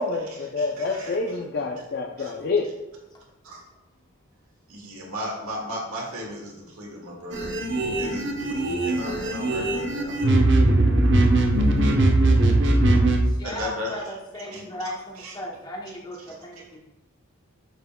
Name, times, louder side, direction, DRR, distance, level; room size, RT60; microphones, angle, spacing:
voice 1, 0.0-2.7, left 3 dB, 50° left, 0 dB, 0.5 m, -27 dB
voice 2, 0.6-1.4 2.2-2.3 3.4-3.6 4.7-7.5 8.0-10.1 13.4-14.0 14.5-15.3 16.3-16.4, equal, 85° right, -2 dB, 1.8 m, -36 dB
sound 1, 7.3-13.2, right 2 dB, 55° right, 0.9 m, -20 dB
voice 3, 12.9-16.8, equal, 20° left, -1 dB, 0.8 m, -37 dB
9.2 x 5.8 x 2.2 m, 0.99 s
head